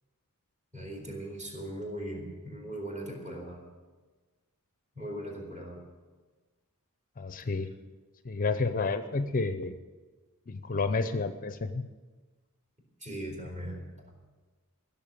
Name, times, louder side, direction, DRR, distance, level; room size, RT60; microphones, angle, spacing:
voice 1, 0.7-3.6 5.0-5.8 13.0-13.9, right 1 dB, 30° right, -1 dB, 4.2 m, -39 dB
voice 2, 7.2-7.7 8.2-9.8 10.5-11.8, left 3 dB, 40° left, 10 dB, 0.6 m, -30 dB
16.0 x 7.1 x 8.8 m, 1.3 s
head